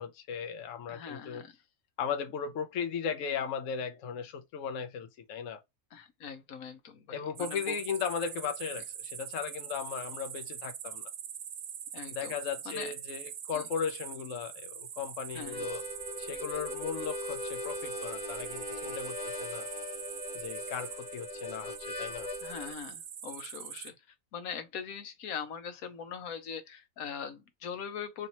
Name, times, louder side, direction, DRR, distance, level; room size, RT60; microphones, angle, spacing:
voice 1, 0.0-1.4 2.0-5.6 7.1-11.1 12.1-15.8 16.2-19.7 20.3-22.3, left 7 dB, 65° left, 1.0 m, -37 dB
voice 2, 0.9-1.6 5.9-7.8 11.9-12.3 12.6-12.9 13.5-13.6 15.3-15.7 22.4-23.9 24.3-28.3, left 7 dB, 85° left, 1.3 m, -41 dB
sound 1, 7.4-23.9, right 9 dB, 60° right, 0.7 m, -43 dB
Harmonica, 15.4-22.8, left 2 dB, 45° left, 0.8 m, -40 dB
3.2 x 2.9 x 4.0 m
omnidirectional pair, 1.5 m